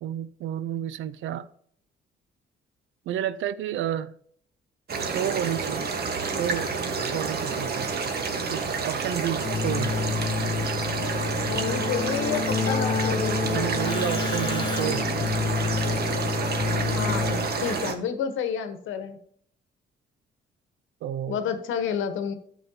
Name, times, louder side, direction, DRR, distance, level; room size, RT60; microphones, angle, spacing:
voice 1, 0.0-1.5 3.1-4.1 5.0-5.9 6.2-6.7 7.1-7.9 8.5-9.9 13.5-15.0 21.0-21.4, right 10 dB, 75° right, 0.6 m, -30 dB
sound 1, 4.9-17.9, right 4 dB, 55° right, 1.3 m, -29 dB
Keyboard (musical), 9.4-17.8, left 6 dB, 25° left, 0.4 m, -29 dB
voice 2, 11.5-13.7 16.9-19.2 21.3-22.3, left 7 dB, 80° left, 1.1 m, -30 dB
10.5 x 7.2 x 2.8 m
cardioid pair, 90°, 20 cm